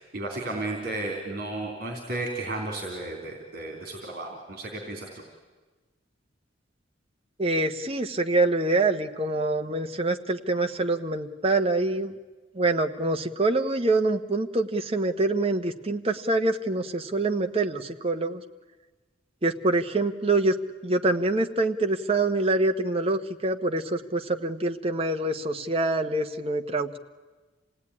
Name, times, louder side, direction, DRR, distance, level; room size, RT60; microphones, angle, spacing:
voice 1, 0.0-5.2, right 2 dB, 50° right, 2 dB, 3.4 m, -33 dB
voice 2, 7.4-12.1 12.5-18.4 19.4-20.6 20.8-27.0, right 2 dB, 30° right, 5 dB, 1.1 m, -25 dB
27.0 x 18.0 x 9.8 m, 1.3 s
head